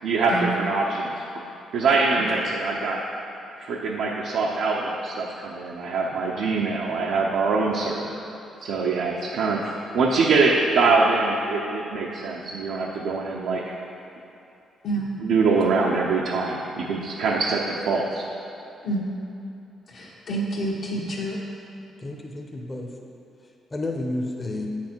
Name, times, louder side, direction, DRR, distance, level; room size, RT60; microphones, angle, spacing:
voice 1, 0.0-1.1 1.7-3.0 3.6-8.2 8.6-13.6 15.2-18.2, right 4 dB, 80° right, -3 dB, 0.7 m, -23 dB
voice 2, 19.9-21.4, right 1 dB, 65° left, -7 dB, 1.3 m, -28 dB
voice 3, 22.0-22.9 23.7-24.7, left 2 dB, 25° left, 1 dB, 0.8 m, -30 dB
8.3 x 6.0 x 4.4 m, 2.7 s
cardioid pair, 90°, 0 cm